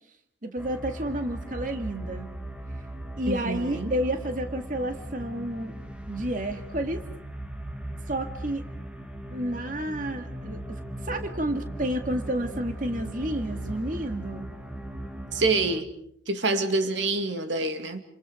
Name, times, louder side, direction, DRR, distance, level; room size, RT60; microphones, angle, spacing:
voice 1, 0.4-2.3 3.2-5.7 6.1-7.1 8.1-8.7 9.3-10.8 11.0-14.5, right 1 dB, 45° right, 2.0 m, -30 dB
sound 1, 0.6-15.8, right 1 dB, 5° right, 1.9 m, -38 dB
voice 2, 3.3-3.9 15.3-15.9 16.3-18.0, right 3 dB, 85° right, 2.4 m, -26 dB
29.5 x 27.0 x 5.1 m
head